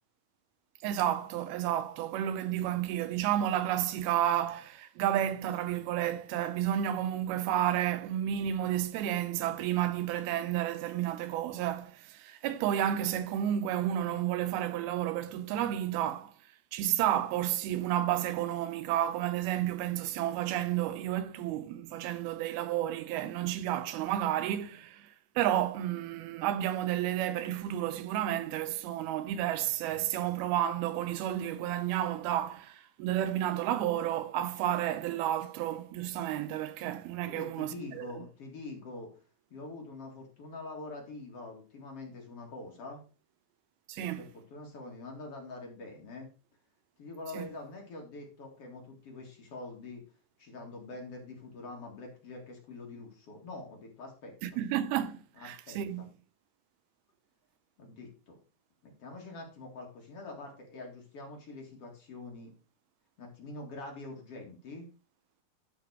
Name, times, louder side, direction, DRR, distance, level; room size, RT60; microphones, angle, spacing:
voice 1, 0.8-16.3 16.7-38.1 43.9-44.2 47.3-47.5 54.4-56.0, right 11 dB, 85° right, 2.8 m, -31 dB
voice 2, 37.3-39.1 39.5-43.0 44.0-46.3 47.0-50.0 50.4-54.6 55.3-56.1 57.8-58.4 58.8-62.5 63.2-64.8, left 2 dB, 45° left, 2.6 m, -45 dB
12.0 x 5.1 x 4.8 m
omnidirectional pair, 4.3 m